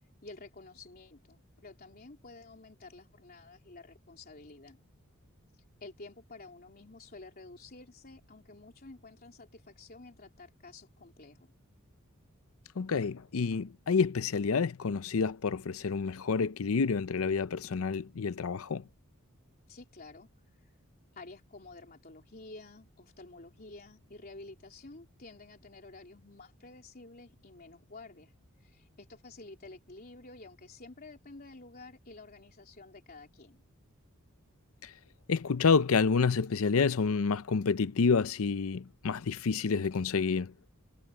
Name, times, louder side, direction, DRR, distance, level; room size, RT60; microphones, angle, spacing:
voice 1, 0.2-4.8 5.6-11.5 19.7-20.3 20.6-20.7 21.1-28.3 28.6-33.6, left 3 dB, 45° left, 3.4 m, -51 dB
voice 2, 12.8-18.8 34.8-34.9 35.3-40.5, left 5 dB, 75° left, 0.6 m, -28 dB
head